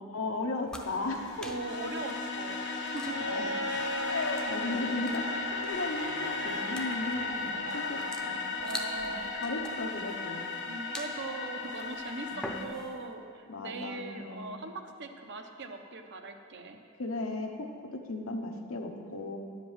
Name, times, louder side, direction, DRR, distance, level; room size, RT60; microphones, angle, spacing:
voice 1, 0.1-1.5 3.3-3.4 3.7-8.4 8.9-10.5 12.3-12.6 13.5-14.5 17.0-19.4, left 2 dB, 90° left, 2 dB, 1.1 m, -36 dB
sound 1, 0.7-13.1, equal, 5° left, 0.6 m, -47 dB
sound 2, 0.8-12.6, left 4 dB, 60° left, 0.9 m, -36 dB
voice 2, 1.4-2.7 2.9-3.3 7.6-9.3 10.7-12.3 12.6-16.8, right 2 dB, 60° right, 5 dB, 0.8 m, -40 dB
Bowed string instrument, 3.0-8.1 9.5-9.6, right 1 dB, 75° right, 2.5 m, -38 dB
10.5 x 5.2 x 7.4 m, 2.3 s
head